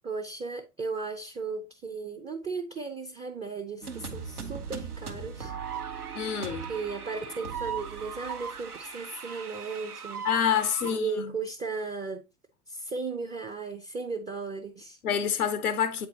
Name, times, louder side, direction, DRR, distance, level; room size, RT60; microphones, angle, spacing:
voice 1, 0.0-5.5 6.7-10.3 10.8-12.2 12.7-15.0, right 4 dB, 15° right, 0.5 m, -36 dB
sound 1, 3.8-11.0, right 6 dB, 90° right, 1.0 m, -38 dB
voice 2, 6.1-6.7 10.2-11.3 15.0-16.1, left 8 dB, 80° left, 0.7 m, -27 dB
8.0 x 4.5 x 2.7 m
figure-of-eight pair, 80°, 44 cm